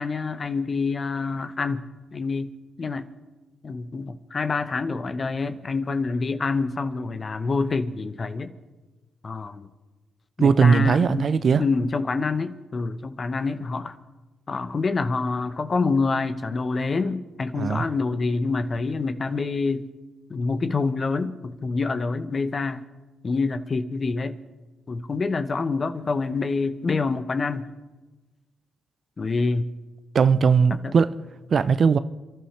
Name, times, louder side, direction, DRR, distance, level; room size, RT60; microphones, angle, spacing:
voice 1, 0.0-2.5 2.8-3.1 3.6-8.5 9.2-9.7 10.4-14.0 14.5-19.9 20.3-22.8 23.2-24.3 24.9-27.7 29.2-29.7 30.8-30.9, left 4 dB, 45° left, 0.9 m, -26 dB
voice 2, 10.4-11.6 17.5-17.9 30.1-31.1 31.5-32.0, right 5 dB, 55° right, 0.5 m, -19 dB
29.0 x 11.5 x 3.3 m
hypercardioid pair, 50°, 0 cm